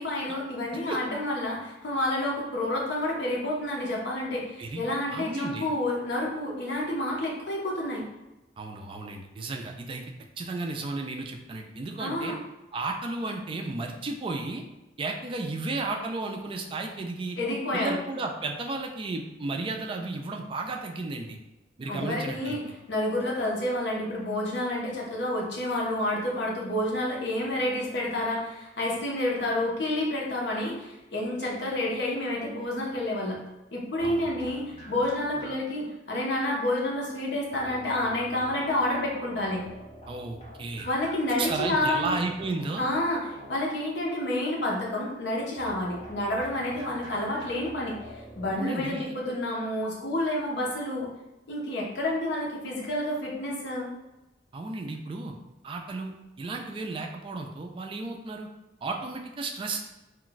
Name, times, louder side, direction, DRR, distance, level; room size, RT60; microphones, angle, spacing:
voice 1, 0.0-8.1 12.0-12.4 17.4-18.0 21.9-22.6 22.9-33.4 33.7-39.7 40.8-42.1 42.8-48.0 48.4-51.1 51.5-53.9, left 1 dB, 70° left, -3 dB, 0.8 m, -29 dB
voice 2, 5.1-5.7 8.6-10.0 10.4-12.3 12.7-14.6 15.0-17.4 17.7-21.4 21.8-22.6 34.0-34.3 40.1-40.9 41.4-42.8 48.5-49.1 54.5-55.3 55.6-58.5 58.8-59.8, right 3 dB, 30° right, 3 dB, 0.3 m, -33 dB
sound 1, 34.0-35.9 37.5-43.9 45.5-49.0, equal, 35° left, 1.2 m, -46 dB
2.4 x 2.2 x 3.8 m, 1.0 s
head